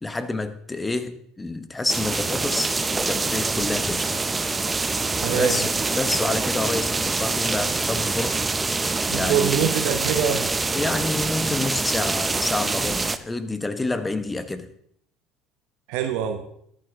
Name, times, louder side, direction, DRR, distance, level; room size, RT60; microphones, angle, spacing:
voice 1, 0.0-4.1 5.3-8.4 9.1-9.8 10.7-14.7, left 2 dB, 15° left, 1.2 m, -28 dB
sound 1, 1.9-13.2, right 3 dB, 20° right, 0.8 m, -25 dB
voice 2, 5.2-5.6 9.1-10.5 15.9-16.4, right 9 dB, 70° right, 1.1 m, -24 dB
13.5 x 11.5 x 3.7 m
hypercardioid pair, 75°, 0 cm